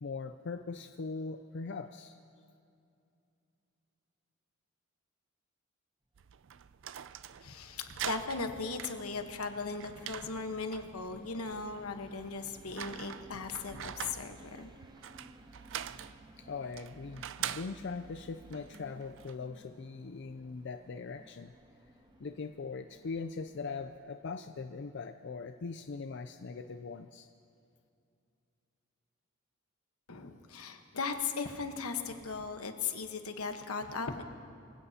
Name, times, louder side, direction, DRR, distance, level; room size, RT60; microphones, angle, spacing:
voice 1, 0.0-2.2 16.5-21.5 22.2-27.3, left 4 dB, 55° left, 8 dB, 0.4 m, -41 dB
sound 1, 6.2-19.4, right 10 dB, 60° right, 0.4 m, -45 dB
sound 2, 6.4-24.0, right 1 dB, 20° right, 0.7 m, -58 dB
voice 2, 7.4-14.7 30.1-34.2, left 4 dB, 85° left, 6 dB, 1.2 m, -38 dB
24.5 x 16.5 x 2.8 m, 2.6 s
head